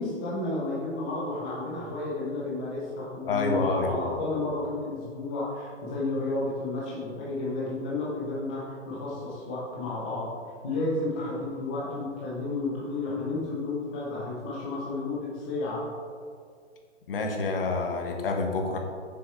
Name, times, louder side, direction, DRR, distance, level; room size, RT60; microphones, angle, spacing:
voice 1, 0.0-10.3 10.6-15.8, left 2 dB, 10° left, -7 dB, 0.4 m, -32 dB
voice 2, 3.3-4.2 17.1-18.8, left 3 dB, 50° left, 3 dB, 1.4 m, -28 dB
6.9 x 6.4 x 4.4 m, 2.1 s
hypercardioid pair, 145°, 36 cm